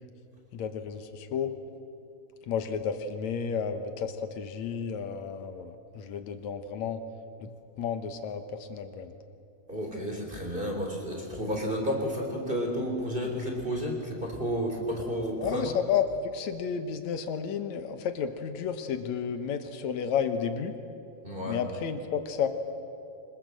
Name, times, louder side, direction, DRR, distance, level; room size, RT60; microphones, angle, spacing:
voice 1, 0.5-1.5 2.5-7.0 7.4-9.1 15.4-20.7 21.5-22.5, left 7 dB, 65° left, 8 dB, 2.0 m, -32 dB
voice 2, 9.7-15.7 21.2-21.6, equal, 15° right, 1 dB, 3.1 m, -31 dB
25.5 x 20.5 x 7.7 m, 2.6 s
omnidirectional pair, 4.3 m